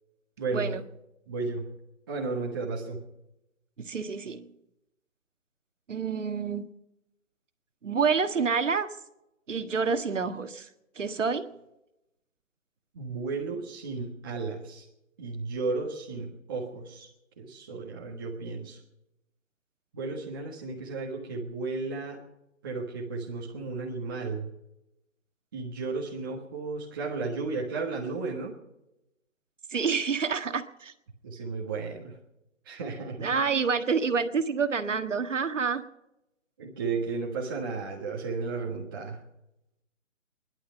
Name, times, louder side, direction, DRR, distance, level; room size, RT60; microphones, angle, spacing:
voice 1, 0.4-0.7 1.3-1.6 2.1-3.0 12.9-14.8 15.2-17.1 17.4-18.8 19.9-22.2 22.6-24.5 25.5-28.5 31.2-32.2 32.6-33.3 36.6-39.2, right 4 dB, 15° right, -4 dB, 1.5 m, -34 dB
voice 2, 3.8-4.5 5.9-6.7 7.8-8.9 9.5-10.7 11.0-11.5 29.7-30.9 33.2-35.8, right 5 dB, 65° right, 9 dB, 1.7 m, -28 dB
21.0 x 11.5 x 5.8 m, 0.88 s
hypercardioid pair, 175°, 40 cm